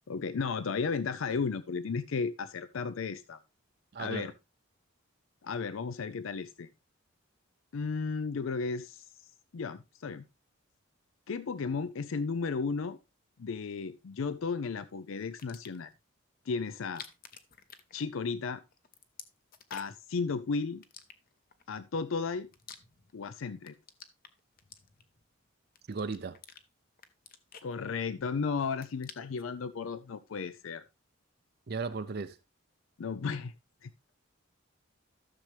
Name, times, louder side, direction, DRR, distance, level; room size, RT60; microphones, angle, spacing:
voice 1, 0.1-3.4 4.0-4.3 5.4-6.7 7.7-9.0 9.5-10.2 11.3-13.0 13.4-15.9 16.5-17.0 17.9-18.6 19.7-20.8 21.7-22.5 23.1-23.7 27.6-30.8 33.0-33.5 33.8-33.9, left 5 dB, 80° left, 0.5 m, -34 dB
voice 2, 3.9-4.3 25.9-26.4 31.7-32.4, right 4 dB, 50° right, 0.5 m, -36 dB
sound 1, 15.4-15.9 16.8-18.4 18.7-20.1 20.8-21.6 22.2-23.3 23.6-25.3 25.8-26.6 27.0-28.3 28.6-29.5, left 7 dB, 45° left, 0.9 m, -51 dB
13.5 x 6.7 x 3.3 m
head